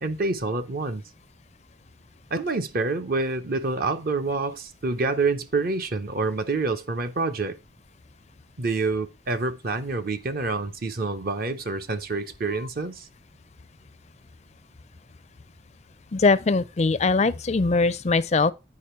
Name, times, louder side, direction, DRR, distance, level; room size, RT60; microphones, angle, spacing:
voice 1, 0.0-1.0 2.3-7.6 8.6-13.1, right 3 dB, 50° right, 0.7 m, -27 dB
voice 2, 16.1-18.5, left 3 dB, 35° left, 0.4 m, -21 dB
8.5 x 5.0 x 4.4 m
head